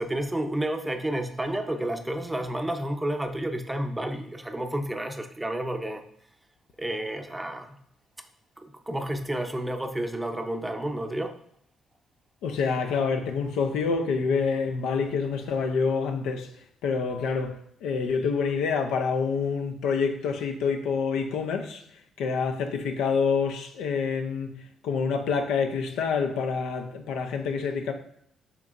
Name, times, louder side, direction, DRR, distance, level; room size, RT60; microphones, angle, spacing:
voice 1, 0.0-6.0 6.8-7.8 8.6-11.3, right 1 dB, 10° right, 0.5 m, -30 dB
voice 2, 12.4-16.5 16.8-21.8 22.2-27.9, left 5 dB, 90° left, 0.5 m, -27 dB
6.9 x 2.9 x 2.5 m
cardioid pair, 90°, 0 cm